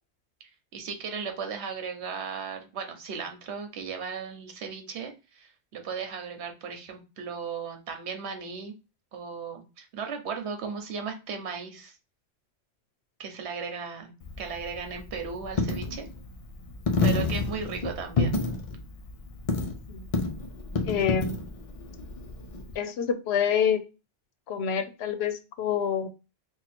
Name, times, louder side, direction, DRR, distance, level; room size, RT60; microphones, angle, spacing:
voice 1, 0.7-8.7 9.1-12.0 13.2-16.1 17.0-18.4, right 6 dB, 80° right, 5 dB, 1.1 m, -36 dB
Coin (dropping), 14.2-22.8, left 3 dB, 50° left, 0.4 m, -30 dB
voice 2, 20.8-21.4 22.7-23.8 24.5-26.1, left 8 dB, 75° left, 10 dB, 0.8 m, -27 dB
2.8 x 2.2 x 4.1 m, 0.30 s
omnidirectional pair, 1.1 m